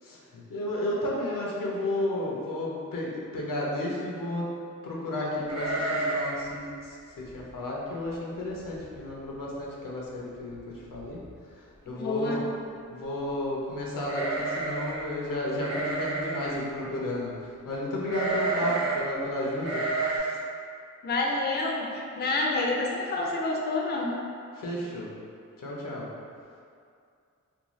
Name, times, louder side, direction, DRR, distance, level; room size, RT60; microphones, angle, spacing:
voice 1, 0.0-4.5 4.8-10.6 10.9-11.2 11.6-12.4 12.9-20.4 24.5-25.1 25.6-26.1, left 1 dB, 80° left, -4 dB, 0.6 m, -32 dB
sound 1, 5.5-6.4 6.7-6.8 7.3-7.5 8.1-8.2 8.5-9.0 9.3-9.4 10.5-10.6 10.9-11.4 14.0-15.0 15.6-16.6 18.1-19.0 19.6-20.2, right 3 dB, 45° right, 0.7 m, -30 dB
voice 2, 11.9-12.5 21.0-24.1, left 2 dB, 30° left, -2 dB, 0.4 m, -28 dB
2.6 x 2.2 x 3.0 m, 2.4 s
cardioid pair, 65°, 33 cm